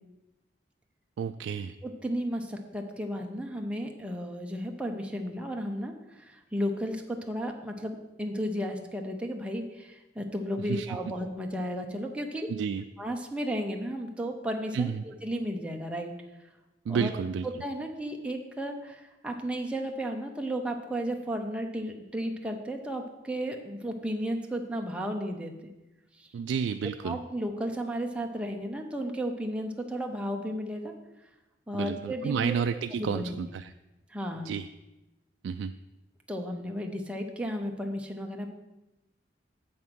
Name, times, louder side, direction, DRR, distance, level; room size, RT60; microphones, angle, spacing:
voice 1, 1.2-1.8 10.6-11.0 12.5-12.8 14.7-15.0 16.9-17.5 26.3-27.2 31.7-33.7 34.4-34.7 35.4-35.8, right 6 dB, 90° right, 8 dB, 0.3 m, -31 dB
voice 2, 1.8-12.5 13.0-16.1 16.9-17.1 17.6-25.7 26.2-26.3 27.0-30.9 31.7-32.6 33.0-33.4 34.1-34.5 36.3-38.5, equal, 5° right, 2 dB, 0.8 m, -34 dB
7.8 x 5.6 x 6.2 m, 1.0 s
head